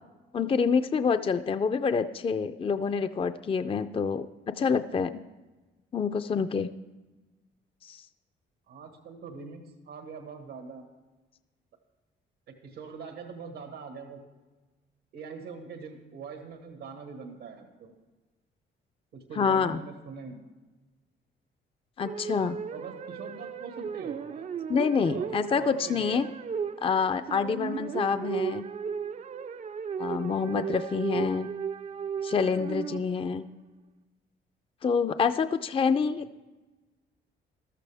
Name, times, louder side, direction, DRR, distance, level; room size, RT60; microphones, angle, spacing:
voice 1, 0.3-5.2 5.9-6.7 7.8-8.1 19.4-19.8 22.0-22.6 24.7-26.3 26.8-28.6 30.0-31.5 32.2-33.4 34.8-36.3, left 5 dB, 30° left, 11 dB, 0.4 m, -27 dB
voice 2, 8.7-10.8 12.6-14.2 15.1-17.9 19.1-20.5 22.7-24.5 24.9-26.2 36.0-36.1, right 5 dB, 90° right, 4 dB, 1.6 m, -42 dB
sound 1, 22.0-33.4, right 7 dB, 35° right, 0.4 m, -35 dB
14.0 x 12.5 x 3.5 m, 1.2 s
cardioid pair, 90°, 20 cm